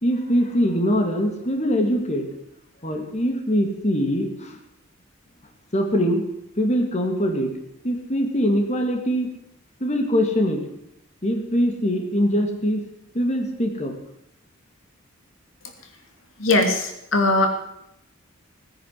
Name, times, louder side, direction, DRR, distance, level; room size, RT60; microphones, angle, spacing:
voice 1, 0.0-2.3 2.8-4.6 5.7-6.2 6.6-7.5 7.8-9.3 9.8-10.6 11.2-12.8 13.1-13.9, equal, 35° left, 4 dB, 2.6 m, -22 dB
voice 2, 16.4-17.5, left 2 dB, 80° left, 6 dB, 2.4 m, -20 dB
18.0 x 10.0 x 7.7 m, 0.79 s
head